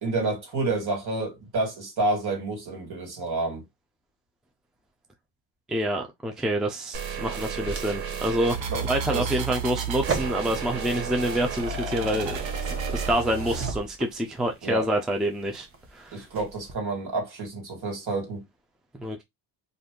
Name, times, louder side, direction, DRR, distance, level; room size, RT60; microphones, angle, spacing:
voice 1, 0.0-3.6 8.7-8.9 9.1-9.3 14.6-14.9 16.1-18.4, right 3 dB, 55° right, 2.0 m, -29 dB
voice 2, 5.7-16.3 18.9-19.2, right 1 dB, ahead, 0.5 m, -27 dB
sound 1, 6.9-13.1, right 6 dB, 85° right, 0.9 m, -32 dB
sound 2, 7.6-14.4 14.9-15.9 16.2-16.7, right 4 dB, 30° right, 0.9 m, -36 dB
2.7 x 2.6 x 3.6 m
cardioid pair, 120°, 44 cm